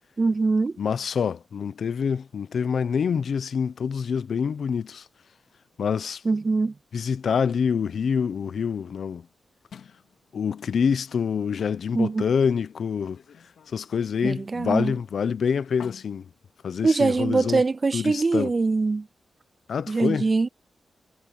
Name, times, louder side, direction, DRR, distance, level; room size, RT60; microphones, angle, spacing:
voice 1, 0.2-0.7 6.2-6.7 11.9-12.2 14.2-15.0 16.8-19.1 19.9-20.5, right 3 dB, 30° right, 0.3 m, -23 dB
voice 2, 0.8-5.0 5.8-6.2 6.9-9.3 10.3-13.2 13.7-16.2 16.6-17.6 17.9-18.5 19.7-20.3, left 6 dB, 60° left, 0.7 m, -26 dB
sound 1, 9.7-17.5, left 7 dB, 90° left, 3.2 m, -53 dB
wide cardioid pair, 165°, 0 cm